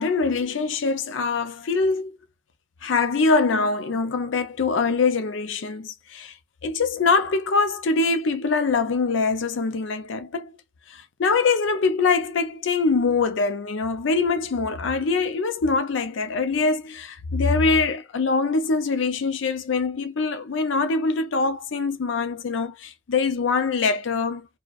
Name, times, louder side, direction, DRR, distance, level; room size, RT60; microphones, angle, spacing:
voice 1, 0.0-2.1 2.8-6.3 6.6-10.5 10.9-24.5, left 4 dB, 75° left, 0.5 m, -23 dB
2.4 x 2.2 x 2.3 m
head